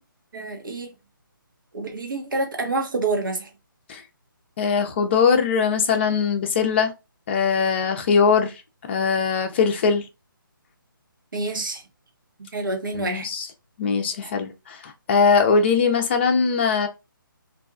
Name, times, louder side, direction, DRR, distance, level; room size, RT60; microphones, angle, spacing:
voice 1, 0.3-0.9 1.7-3.5 11.3-11.8 12.5-13.3, right 3 dB, 65° right, 0.9 m, -27 dB
voice 2, 4.6-6.9 7.3-8.5 8.9-10.1 12.9-13.5 13.8-16.9, left 5 dB, 30° left, 0.5 m, -21 dB
2.6 x 2.2 x 2.4 m
figure-of-eight pair, 150°, 12 cm